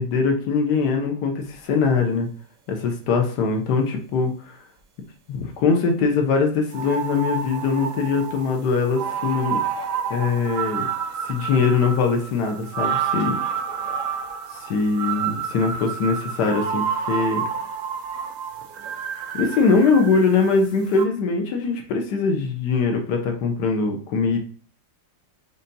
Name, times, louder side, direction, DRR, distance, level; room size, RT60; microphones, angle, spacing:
voice 1, 0.0-2.3 2.7-4.3 5.3-9.6 10.1-10.9 11.3-13.4 14.7-17.4 19.3-24.4, left 4 dB, 70° left, 3 dB, 1.3 m, -22 dB
sound 1, 6.7-20.7 20.9-21.0, right 7 dB, 75° right, 0.7 m, -29 dB
5.4 x 2.7 x 2.6 m, 0.43 s
omnidirectional pair, 2.0 m